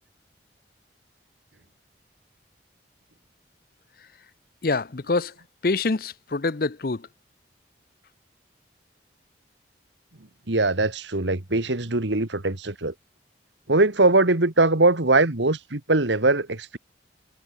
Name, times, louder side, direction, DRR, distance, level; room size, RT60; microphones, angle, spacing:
voice 1, 4.6-5.3 5.6-7.0, left 3 dB, 50° left, 0.7 m, -25 dB
voice 2, 10.5-12.9 13.7-16.8, right 2 dB, 75° right, 1.9 m, -21 dB
head